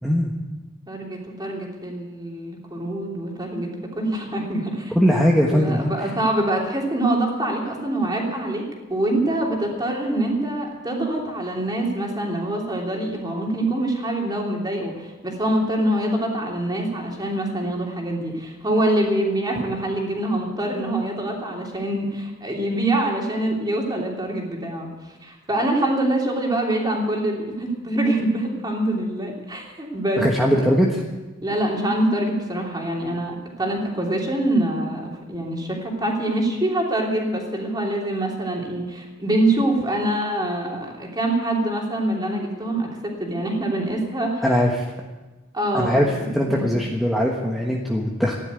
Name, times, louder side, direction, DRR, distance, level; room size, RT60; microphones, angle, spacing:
voice 1, 0.0-0.3 4.9-5.9 30.2-30.9 44.4-44.7 45.7-46.1 46.3-48.3, equal, ahead, -2 dB, 1.3 m, -20 dB
voice 2, 0.9-3.7 3.9-4.9 5.5-8.6 8.9-24.9 25.2-30.2 30.5-30.7 31.4-42.9 43.2-44.4 45.5-46.7, right 1 dB, 20° right, -1 dB, 3.2 m, -25 dB
14.5 x 11.0 x 8.2 m, 1.2 s
head